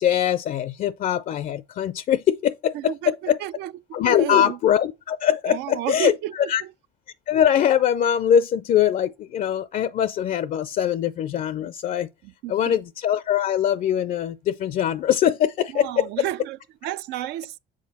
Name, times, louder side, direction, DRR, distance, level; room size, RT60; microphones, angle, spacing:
voice 1, 0.0-3.4 3.9-6.6 7.3-12.1 12.5-16.1, left 9 dB, 55° left, 0.4 m, -22 dB
voice 2, 2.7-3.7 4.0-4.6 5.5-6.7 12.2-12.8 15.7-17.6, right 14 dB, 85° right, 0.4 m, -32 dB
7.3 x 4.1 x 4.1 m
cardioid pair, 110°, 17 cm